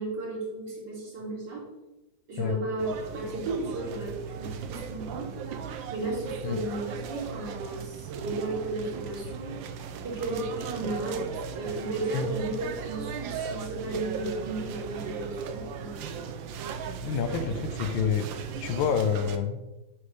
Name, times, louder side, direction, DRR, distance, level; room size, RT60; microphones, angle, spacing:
voice 1, 0.0-1.7 2.3-5.3 5.9-9.7 10.0-16.3 17.3-17.5, right 2 dB, 60° right, -6 dB, 3.5 m, -34 dB
sound 1, 2.8-19.4, right 6 dB, 80° right, 1.4 m, -37 dB
voice 2, 17.0-18.3 18.6-19.6, left 7 dB, 80° left, 9 dB, 1.5 m, -28 dB
8.3 x 3.6 x 6.4 m, 1.0 s
omnidirectional pair, 2.1 m